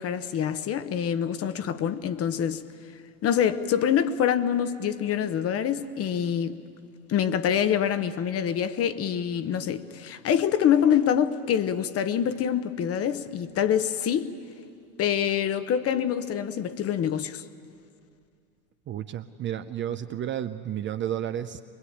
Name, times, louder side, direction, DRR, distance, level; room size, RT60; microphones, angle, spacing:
voice 1, 0.0-2.6 3.2-6.6 7.1-14.3 15.0-17.4, left 9 dB, 30° left, 1.0 m, -25 dB
voice 2, 18.9-21.6, right 10 dB, 25° right, 0.6 m, -32 dB
23.0 x 21.0 x 8.8 m
hypercardioid pair, 105°, 45 cm